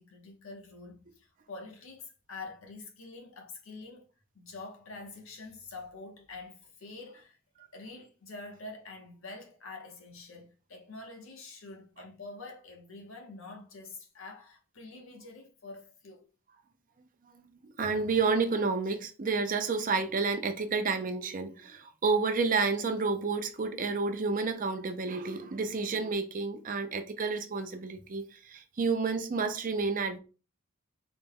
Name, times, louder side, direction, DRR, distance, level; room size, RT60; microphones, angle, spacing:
voice 1, 0.0-4.1 4.3-7.4 7.7-16.3, left 3 dB, 75° left, 0.9 m, -46 dB
voice 2, 17.6-30.2, right 4 dB, 40° right, 0.5 m, -30 dB
4.0 x 2.2 x 3.5 m
head